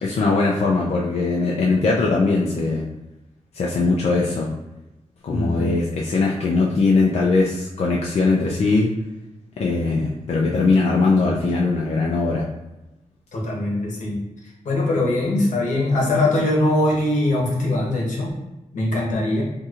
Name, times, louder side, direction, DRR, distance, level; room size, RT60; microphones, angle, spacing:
voice 1, 0.0-2.8 3.5-4.5 5.2-8.9 9.6-12.5, left 3 dB, 60° left, -3 dB, 0.4 m, -20 dB
voice 2, 5.3-5.7 13.3-14.2 14.6-18.3 18.7-19.4, left 1 dB, 85° left, -3 dB, 1.1 m, -21 dB
4.1 x 2.7 x 2.4 m, 0.97 s
wide cardioid pair, 160°, 12 cm